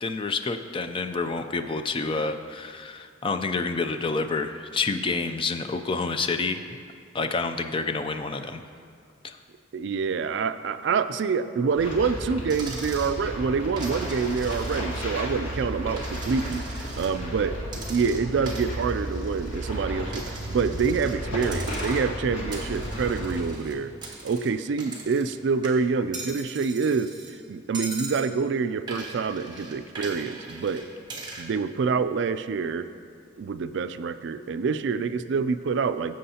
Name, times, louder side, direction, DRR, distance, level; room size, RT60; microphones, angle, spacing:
voice 1, 0.0-6.6 7.1-8.6 9.2-9.4, left 4 dB, 25° left, 8 dB, 0.4 m, -28 dB
voice 2, 9.7-17.6 17.9-23.9 24.2-27.1 27.5-30.8 31.4-32.9 33.4-36.1, right 5 dB, 60° right, 11 dB, 0.3 m, -26 dB
sound 1, 11.7-23.4, equal, 85° left, 1.8 m, -33 dB
Coin (dropping), 12.5-13.2 13.8-15.1 15.4-17.1 17.7-19.7 20.1-21.2 21.4-22.2 22.5-25.4 25.6-27.3 27.7-28.3 28.9-31.5, right 3 dB, 20° right, 1.2 m, -40 dB
16.5 x 7.6 x 2.8 m, 2.2 s
head